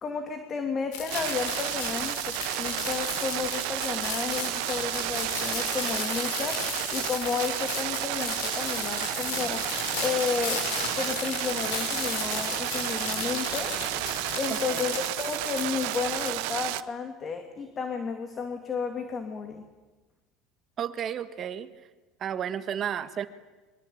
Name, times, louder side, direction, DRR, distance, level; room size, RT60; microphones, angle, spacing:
voice 1, 0.0-9.7 10.0-10.7 10.9-13.8 14.3-19.7, left 5 dB, 30° left, 6 dB, 2.5 m, -32 dB
sound 1, 0.9-16.3, left 7 dB, 70° left, 6.7 m, -35 dB
sound 2, 1.1-16.8, right 19 dB, 75° right, 1.0 m, -32 dB
voice 2, 14.5-14.8 20.8-21.7 22.2-23.3, right 9 dB, 35° right, 11 dB, 1.6 m, -32 dB
25.5 x 23.5 x 8.8 m, 1.2 s
cardioid pair, 140°, 0 cm